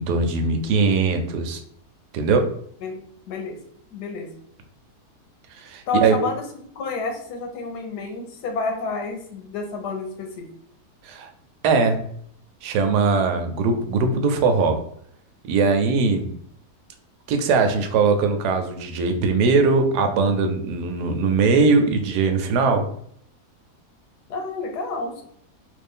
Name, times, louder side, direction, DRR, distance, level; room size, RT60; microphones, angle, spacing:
voice 1, 0.0-1.6 2.1-2.5 5.6-6.2 11.0-11.3 11.6-12.0 12.6-14.8 15.4-16.3 17.3-22.9, right 4 dB, 90° right, 6 dB, 1.2 m, -20 dB
voice 2, 3.3-3.6 3.9-4.3 5.9-6.4 6.8-10.5 24.3-25.2, left 3 dB, 90° left, 4 dB, 1.3 m, -29 dB
3.3 x 2.5 x 3.4 m, 0.65 s
omnidirectional pair, 1.7 m